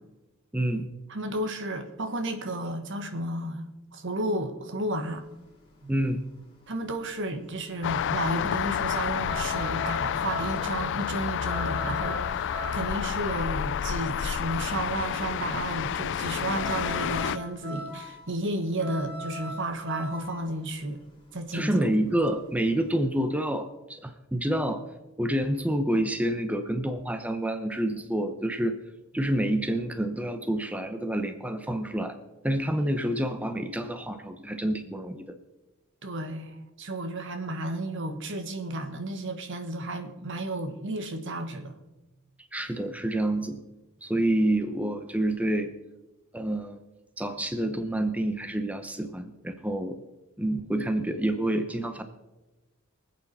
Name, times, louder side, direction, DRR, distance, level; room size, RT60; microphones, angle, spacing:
voice 1, 0.5-0.9 5.9-6.2 21.5-24.8 25.2-28.8 29.1-32.2 32.4-35.3 42.5-43.6 44.0-45.7 46.3-46.8 47.2-50.0 50.4-52.0, right 1 dB, 5° right, 7 dB, 0.8 m, -28 dB
voice 2, 1.1-5.3 5.8-5.9 6.7-21.0 21.3-21.8 36.0-41.8, right 1 dB, 60° right, 7 dB, 1.5 m, -32 dB
sound 1, 4.9-22.9, equal, 25° left, 3.5 m, -41 dB
sound 2, 7.8-17.4, left 8 dB, 60° left, 0.4 m, -30 dB
24.0 x 8.4 x 4.2 m, 1.1 s
head